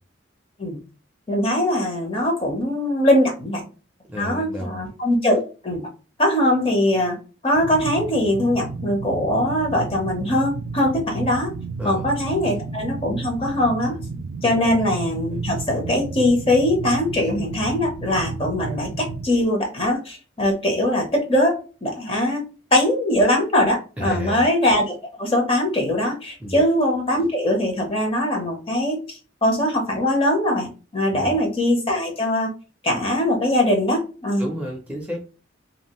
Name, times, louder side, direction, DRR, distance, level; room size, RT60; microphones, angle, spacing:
voice 1, 1.3-3.6 4.2-5.9 6.2-7.2 7.4-11.5 11.8-14.0 14.4-22.4 22.7-32.5 32.8-34.5, left 1 dB, 30° left, 2 dB, 0.7 m, -21 dB
voice 2, 4.1-4.8 11.8-12.1 14.6-14.8 24.0-24.4 26.4-26.6 31.1-31.3 34.4-35.2, equal, 5° right, 0 dB, 0.5 m, -31 dB
sound 1, 7.5-19.3, right 4 dB, 75° right, 0.3 m, -32 dB
2.6 x 2.4 x 3.0 m, 0.35 s
head